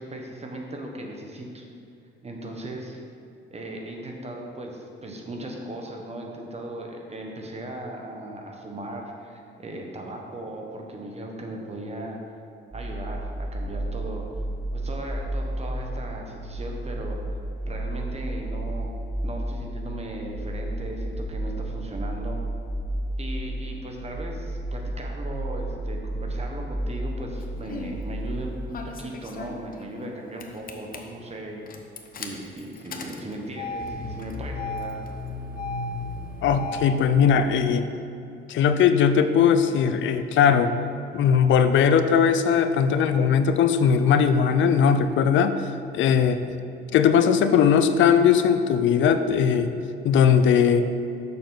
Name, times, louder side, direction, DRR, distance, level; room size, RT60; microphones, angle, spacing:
voice 1, 0.0-1.7 2.2-3.0 3.5-12.2 12.7-14.3 14.7-17.4 17.7-18.9 19.2-22.4 23.2-31.7 32.1-35.0, right 1 dB, 30° right, 1 dB, 1.2 m, -37 dB
sound 1, 12.7-28.6, right 1 dB, ahead, 1.6 m, -32 dB
Engine starting, 27.4-28.0 28.7-30.1 30.4-31.0 31.7-37.0, left 3 dB, 45° left, 0.8 m, -35 dB
voice 2, 36.4-37.9 38.5-40.7 41.1-45.6 45.9-46.4 46.9-49.7 50.0-50.9, left 7 dB, 75° left, 10 dB, 0.5 m, -19 dB
6.7 x 6.6 x 4.0 m, 2.7 s
cardioid pair, 90°, 20 cm